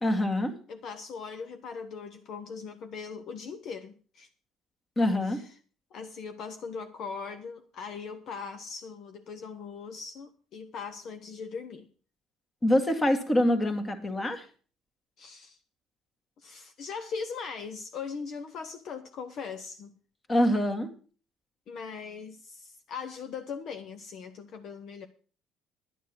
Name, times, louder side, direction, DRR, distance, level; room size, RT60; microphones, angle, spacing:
voice 1, 0.0-0.5 5.0-5.4 12.6-14.5 20.3-20.9, left 1 dB, 20° left, 2.0 m, -25 dB
voice 2, 0.7-4.3 5.3-5.4 5.9-11.9 15.2-15.6 16.4-19.9 21.7-25.1, left 5 dB, 55° left, 1.0 m, -40 dB
11.0 x 9.2 x 6.1 m
cardioid pair, 130°, 0 cm